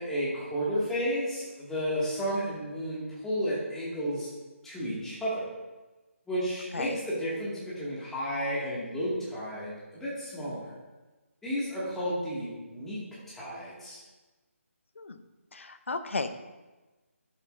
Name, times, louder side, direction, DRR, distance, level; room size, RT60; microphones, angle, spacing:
voice 1, 0.0-4.3 4.6-5.5 6.3-10.7 11.4-13.0 13.3-14.0, equal, 5° left, -9 dB, 2.3 m, -32 dB
voice 2, 15.5-16.3, left 3 dB, 60° left, 9 dB, 0.8 m, -34 dB
11.0 x 7.4 x 2.7 m, 1.2 s
figure-of-eight pair, 150°, 8 cm